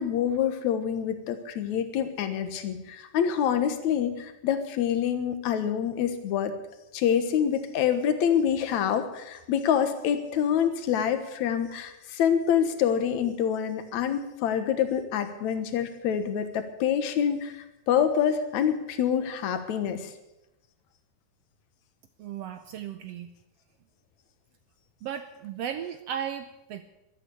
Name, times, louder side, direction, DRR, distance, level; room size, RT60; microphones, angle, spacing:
voice 1, 0.0-6.5 6.9-20.1, left 8 dB, 70° left, 9 dB, 2.6 m, -26 dB
voice 2, 22.2-23.3 25.0-26.9, right 9 dB, 75° right, 9 dB, 1.5 m, -35 dB
13.0 x 12.5 x 8.3 m, 0.95 s
omnidirectional pair, 3.6 m